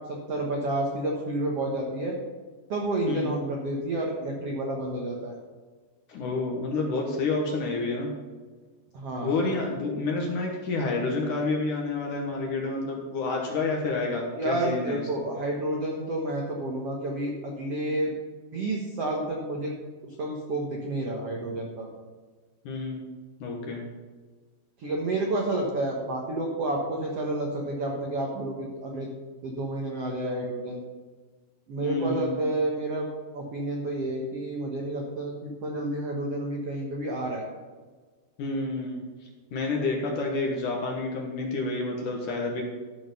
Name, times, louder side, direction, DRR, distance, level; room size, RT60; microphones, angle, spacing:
voice 1, 0.1-2.1 2.7-5.4 8.9-9.4 14.3-18.1 18.5-19.7 20.0-21.9 24.8-29.1 29.4-30.8 31.7-33.1 33.3-37.5, right 1 dB, 85° right, -1 dB, 1.3 m, -30 dB
voice 2, 6.1-8.1 9.2-15.0 22.6-23.0 23.4-23.8 31.8-32.4 38.4-42.6, left 3 dB, 60° left, 0 dB, 2.3 m, -29 dB
13.0 x 6.4 x 5.4 m, 1.4 s
omnidirectional pair, 4.9 m